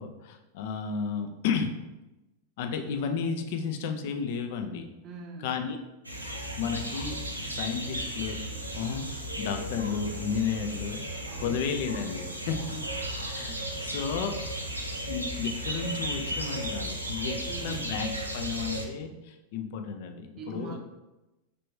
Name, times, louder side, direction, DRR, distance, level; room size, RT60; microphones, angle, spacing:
voice 1, 0.0-1.7 2.6-4.9 5.4-5.8 6.6-8.4 8.7-12.6 13.3-14.4 15.1-18.1 18.3-20.8, left 6 dB, 50° left, 5 dB, 0.4 m, -33 dB
voice 2, 5.0-5.6 11.3-11.6 12.7-12.9 17.4-18.0 20.4-20.8, right 4 dB, 30° right, 1 dB, 0.6 m, -42 dB
sound 1, 6.0-18.8, right 1 dB, 85° right, 0.4 m, -35 dB
3.3 x 2.5 x 3.1 m, 1.0 s
figure-of-eight pair, 90°, 0 cm